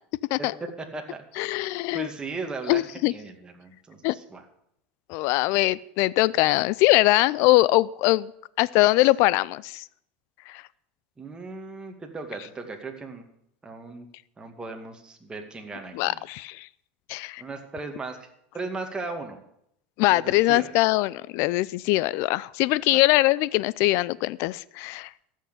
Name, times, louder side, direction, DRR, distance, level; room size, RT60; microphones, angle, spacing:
voice 1, 0.8-1.2 1.9-4.4 11.2-13.2 13.6-14.1 14.4-16.2 17.4-18.2 18.5-19.4 20.1-20.7 22.9-23.0, right 3 dB, 15° right, 3 dB, 2.2 m, -37 dB
voice 2, 1.4-2.1 2.7-3.1 4.0-4.2 5.1-8.3 8.6-9.8 10.5-10.6 15.9-16.7 17.1-17.4 20.0-25.1, left 19 dB, 60° left, 21 dB, 0.5 m, -22 dB
14.0 x 6.5 x 8.5 m, 0.74 s
supercardioid pair, 100°, 5 cm